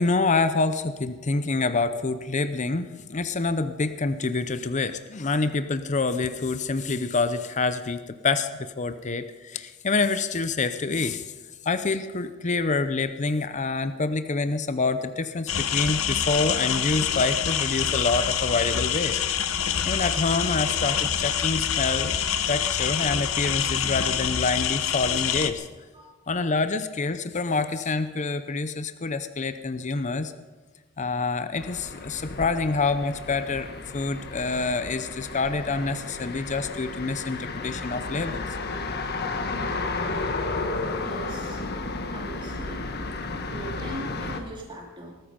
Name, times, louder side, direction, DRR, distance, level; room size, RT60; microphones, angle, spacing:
voice 1, 0.0-11.3 11.6-19.2 19.6-22.1 22.5-25.7 26.3-30.3 31.0-38.5, left 3 dB, 35° left, 11 dB, 0.7 m, -27 dB
sound 1, 15.5-25.5, left 8 dB, 85° left, 1.0 m, -26 dB
voice 2, 25.9-26.3 40.1-40.4 41.0-41.6 42.1-42.8 43.5-45.1, right 1 dB, 25° right, -2 dB, 3.2 m, -40 dB
sound 2, 31.5-44.4, left 3 dB, 50° left, 1.4 m, -33 dB
19.5 x 13.5 x 5.2 m, 1.3 s
head